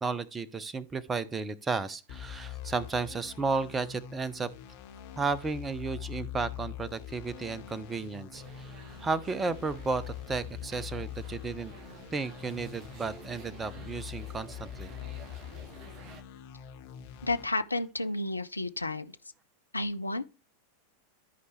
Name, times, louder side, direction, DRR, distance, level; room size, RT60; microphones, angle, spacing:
voice 1, 0.0-4.5 5.2-8.7 9.0-11.7 12.1-14.9, right 4 dB, 15° right, 0.6 m, -33 dB
sound 1, 2.1-17.5, left 11 dB, 45° left, 1.0 m, -44 dB
sound 2, 8.3-16.2, right 5 dB, 35° right, 0.9 m, -52 dB
voice 2, 17.2-19.1 19.7-20.2, left 2 dB, 80° left, 0.4 m, -31 dB
13.5 x 4.7 x 3.1 m
figure-of-eight pair, 90°, 0 cm